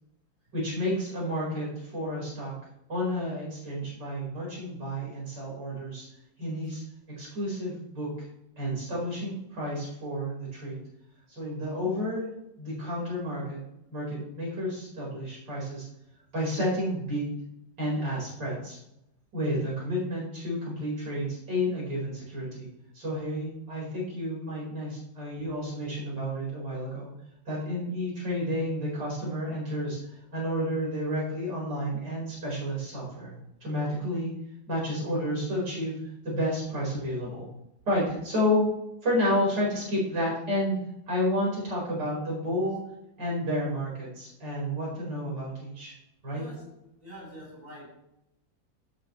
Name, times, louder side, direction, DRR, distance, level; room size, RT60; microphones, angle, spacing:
voice 1, 0.5-2.6 2.9-6.1 6.4-6.8 7.2-8.3 8.6-10.8 11.3-13.6 13.9-15.9 16.3-17.3 17.8-18.8 19.3-22.7 22.9-27.1 27.5-30.0 30.3-33.3 33.6-34.3 34.7-36.0 36.2-37.5 37.9-38.7 39.0-40.8 41.1-42.8 43.2-45.9 46.2-46.5, equal, 65° right, -5 dB, 5.4 m, -30 dB
voice 2, 46.3-46.7 47.0-47.8, right 1 dB, 30° right, -5 dB, 5.0 m, -45 dB
16.5 x 8.4 x 3.2 m, 0.84 s
omnidirectional pair, 2.0 m